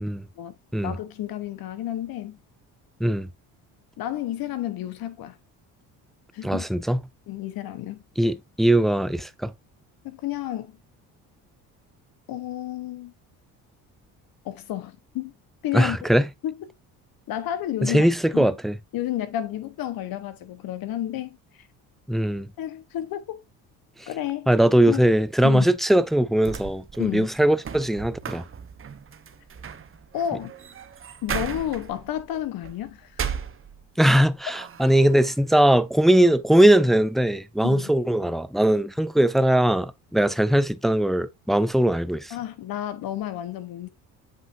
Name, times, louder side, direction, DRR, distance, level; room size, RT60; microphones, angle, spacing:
voice 1, 0.8-2.4 4.0-5.4 6.3-6.6 7.3-8.0 10.0-10.8 12.3-13.1 14.4-15.3 15.6-16.1 16.4-16.5 17.3-18.1 18.3-18.5 18.9-21.4 22.6-23.4 24.1-24.5 24.9-25.0 25.4-25.7 27.0-27.3 30.1-30.5 31.2-33.2 37.6-37.9 42.3-43.9, left 12 dB, 65° left, 1.1 m, -31 dB
voice 2, 6.4-7.0 8.2-9.5 15.7-16.3 17.8-18.8 22.1-22.5 24.0-24.1 24.5-28.5 34.0-42.3, right 1 dB, ahead, 0.4 m, -20 dB
sound 1, 26.4-34.1 34.5-35.3, right 7 dB, 35° right, 1.0 m, -36 dB
7.7 x 5.3 x 2.6 m
supercardioid pair, 85°, 38 cm